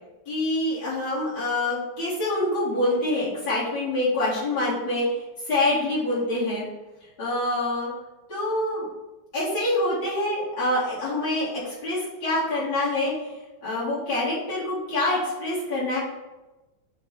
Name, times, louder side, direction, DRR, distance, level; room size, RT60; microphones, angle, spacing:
voice 1, 0.3-5.2 5.5-6.6 7.2-7.9 8.3-8.9 9.3-13.1 13.6-16.0, left 1 dB, 75° left, -11 dB, 3.3 m, -26 dB
8.2 x 2.8 x 5.3 m, 1.0 s
omnidirectional pair, 2.2 m